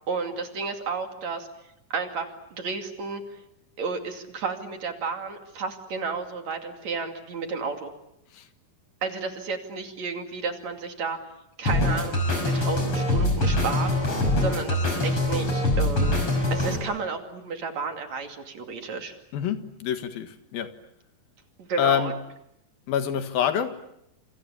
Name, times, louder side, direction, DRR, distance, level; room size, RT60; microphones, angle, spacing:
voice 1, 0.1-1.5 1.9-2.3 2.6-3.4 3.8-7.9 9.0-11.2 11.6-13.9 14.4-16.2 16.5-19.1 21.6-22.1, right 4 dB, 55° right, 4 dB, 3.6 m, -32 dB
sound 1, 11.7-16.8, left 1 dB, 40° left, 6.9 m, -24 dB
voice 2, 19.3-20.7 21.8-22.1 22.9-23.8, left 9 dB, 85° left, 8 dB, 3.5 m, -26 dB
29.5 x 28.0 x 7.1 m, 0.80 s
omnidirectional pair, 4.0 m